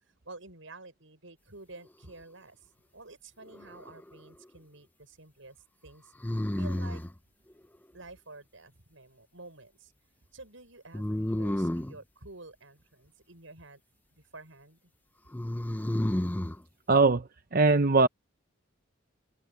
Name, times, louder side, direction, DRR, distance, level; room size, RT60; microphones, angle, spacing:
voice 1, 0.2-2.6 2.9-5.6 5.8-6.1 6.5-7.0 7.9-9.9 10.3-13.8 14.2-14.8, right 2 dB, 80° right, 6.5 m, -50 dB
sound 1, 3.5-4.2 6.2-7.2 10.9-12.0 15.3-16.6, left 1 dB, 10° left, 0.5 m, -31 dB
voice 2, 16.9-18.1, right 3 dB, 45° right, 0.8 m, -22 dB
head